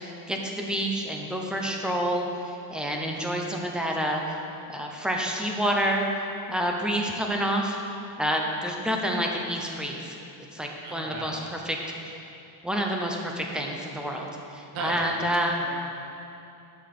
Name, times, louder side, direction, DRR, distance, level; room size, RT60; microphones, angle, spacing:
voice 1, 0.0-4.2 4.7-6.1 6.5-7.8 8.2-10.2 10.5-11.8 12.6-15.5, equal, ahead, 0 dB, 0.6 m, -28 dB
voice 2, 10.8-11.4 14.7-15.0 15.6-15.7, right 3 dB, 80° right, -1 dB, 1.8 m, -35 dB
11.5 x 5.3 x 5.9 m, 2.8 s
cardioid pair, 175°, 47 cm